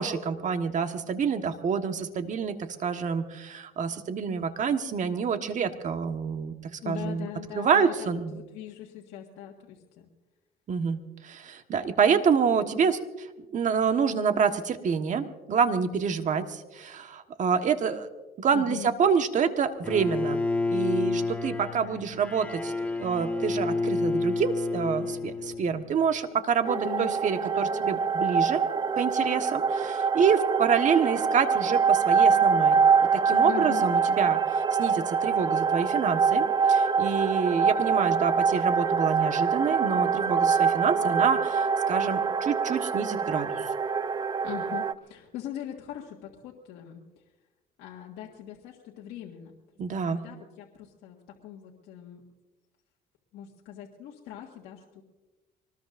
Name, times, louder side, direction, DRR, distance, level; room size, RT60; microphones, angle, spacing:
voice 1, 0.0-7.3 7.5-8.4 10.7-13.3 13.5-18.1 18.4-20.4 20.7-22.7 23.0-28.6 29.0-32.8 33.1-43.7 49.8-50.2, right 6 dB, 45° right, 7 dB, 1.4 m, -27 dB
voice 2, 6.8-10.1 18.5-18.9 26.7-27.2 33.5-33.9 44.4-47.0 47.8-49.6 49.9-52.2 53.3-55.0, left 11 dB, 85° left, -2 dB, 1.7 m, -41 dB
Bowed string instrument, 19.8-26.0, left 3 dB, 10° left, 1.5 m, -29 dB
sound 1, 26.6-44.9, right 6 dB, 25° right, 0.6 m, -24 dB
24.0 x 19.5 x 2.6 m, 1.1 s
cardioid pair, 110°, 17 cm